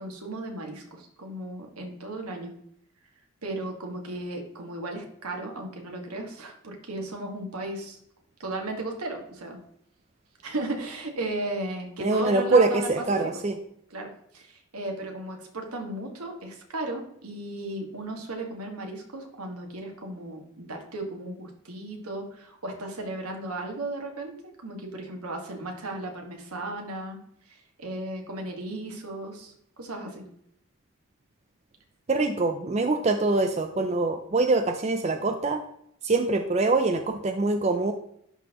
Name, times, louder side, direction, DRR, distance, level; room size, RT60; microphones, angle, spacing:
voice 1, 0.0-2.5 3.4-8.0 8.4-9.6 10.4-13.3 13.9-27.2 27.5-30.3, right 2 dB, 85° right, 2 dB, 1.6 m, -35 dB
voice 2, 12.0-13.5 32.1-35.6 36.0-37.9, right 3 dB, 30° right, 6 dB, 0.4 m, -24 dB
11.0 x 3.9 x 2.9 m, 0.72 s
head